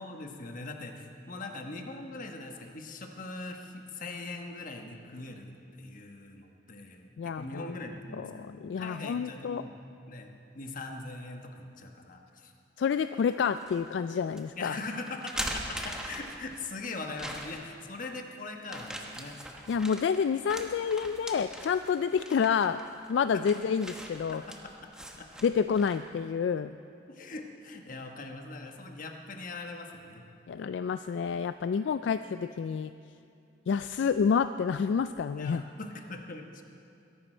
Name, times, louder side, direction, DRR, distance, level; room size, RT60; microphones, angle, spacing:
voice 1, 0.0-9.8 10.1-12.5 14.6-19.4 19.7-19.8 23.3-23.4 24.3-25.3 27.1-30.2 35.3-36.6, left 2 dB, 45° left, 3 dB, 1.2 m, -41 dB
voice 2, 7.2-7.7 8.2-9.6 12.8-14.8 19.7-22.8 23.1-24.4 25.4-26.8 30.5-32.9 33.7-35.6, left 6 dB, 70° left, 11 dB, 0.3 m, -29 dB
sound 1, 13.2-13.8 14.3-14.4 15.1-16.6 17.1-17.8 18.6-26.1, right 1 dB, 5° right, 1.1 m, -41 dB
22.0 x 11.5 x 4.4 m, 2.6 s
head